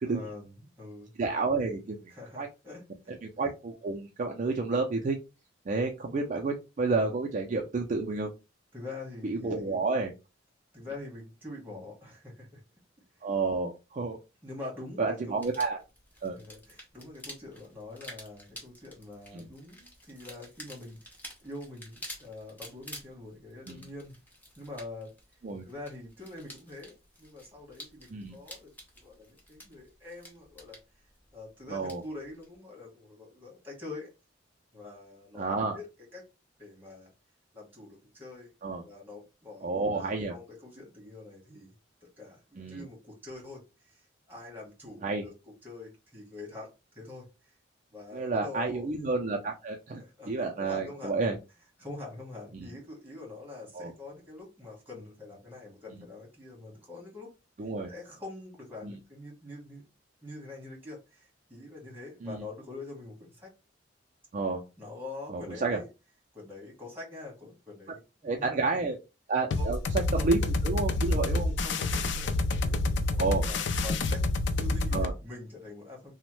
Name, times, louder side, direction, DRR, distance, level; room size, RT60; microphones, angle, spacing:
voice 1, 0.0-1.1 2.1-3.2 8.7-9.8 10.7-12.6 13.1-13.3 14.4-15.4 16.3-21.1 21.4-24.2 24.6-25.1 25.6-30.8 31.3-34.1 34.7-36.3 36.6-37.1 37.5-38.5 38.8-41.7 42.2-47.6 47.9-48.9 50.0-51.2 51.8-57.3 57.9-59.8 60.2-63.5 64.8-65.9 66.3-68.7 69.6-69.8 70.1-70.4 71.4-74.2 74.6-76.1, left 2 dB, 10° right, 1.2 m, -45 dB
voice 2, 1.2-2.0 2.4-2.5 3.2-5.2 5.7-8.3 9.2-10.1 13.2-14.2 15.0-15.8 16.2-16.4 19.3-19.5 23.7-23.8 25.4-25.6 28.1-28.4 31.7-32.0 35.4-35.8 38.6-38.8 39.6-40.3 42.6-42.8 45.0-45.2 48.1-50.0 50.3-51.4 52.5-52.7 53.7-53.9 57.6-57.9 58.8-59.0 62.2-62.4 64.3-64.6 65.3-65.8 68.2-69.0 69.3-71.5 73.2-73.4 74.9-75.1, right 3 dB, 40° right, 0.4 m, -30 dB
sound 1, 15.4-32.6, equal, 10° left, 0.7 m, -50 dB
sound 2, 69.5-75.1, left 2 dB, 65° left, 0.4 m, -28 dB
2.9 x 2.1 x 3.0 m
head